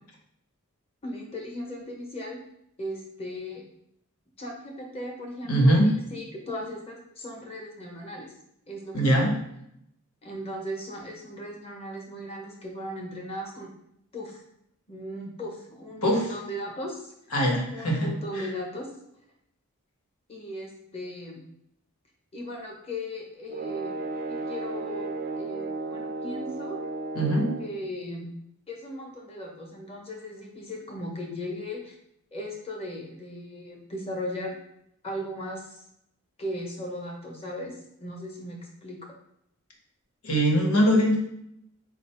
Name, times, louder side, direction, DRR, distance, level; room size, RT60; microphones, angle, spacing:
voice 1, 1.0-2.4 2.8-3.6 4.4-8.3 8.7-9.2 10.2-13.7 14.1-14.4 14.9-17.1 17.7-18.9 20.3-21.4 22.3-24.0 24.3-26.8 27.6-28.3 28.7-32.0 32.3-34.6 35.0-35.8 36.4-37.7 38.0-39.0, equal, 25° left, 0 dB, 0.9 m, -37 dB
voice 2, 5.5-5.9 8.9-9.3 16.0-16.3 17.3-18.5 27.1-27.5 40.2-41.2, equal, 90° left, 0 dB, 1.1 m, -22 dB
sound 1, 23.5-27.8, right 3 dB, 40° right, 0.4 m, -34 dB
4.2 x 2.6 x 4.3 m, 0.76 s
head